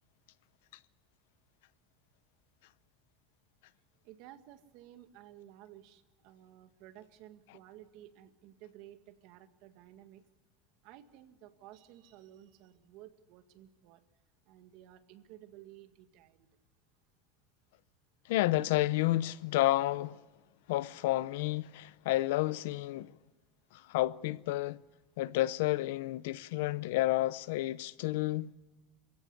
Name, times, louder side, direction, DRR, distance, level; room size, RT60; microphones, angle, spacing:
voice 1, 4.0-10.2 10.8-14.0 14.5-16.5, right 12 dB, 60° right, 1.9 m, -54 dB
voice 2, 18.3-20.2 20.7-23.1 23.7-24.8 25.2-28.5, left 16 dB, 85° left, 0.7 m, -30 dB
27.5 x 16.0 x 8.4 m
cardioid pair, 155°, 0 cm